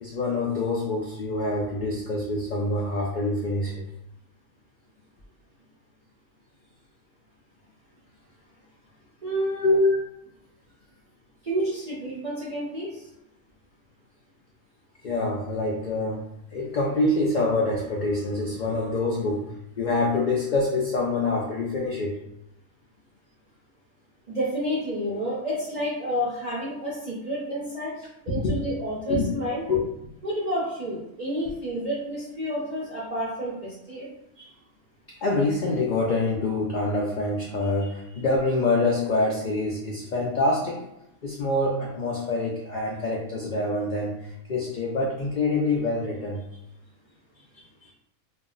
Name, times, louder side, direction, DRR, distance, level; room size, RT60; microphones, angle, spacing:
voice 1, 0.0-3.9 9.6-9.9 15.0-22.2 28.3-28.6 29.1-29.3 29.7-29.9 35.2-40.8 41.2-46.4, left 2 dB, 90° left, -2 dB, 0.4 m, -26 dB
voice 2, 9.2-9.7 11.4-13.1 24.3-29.6 30.2-34.1 34.4-34.5 47.5-47.9, equal, 40° right, -7 dB, 0.6 m, -30 dB
2.4 x 2.0 x 3.7 m, 0.84 s
omnidirectional pair, 1.4 m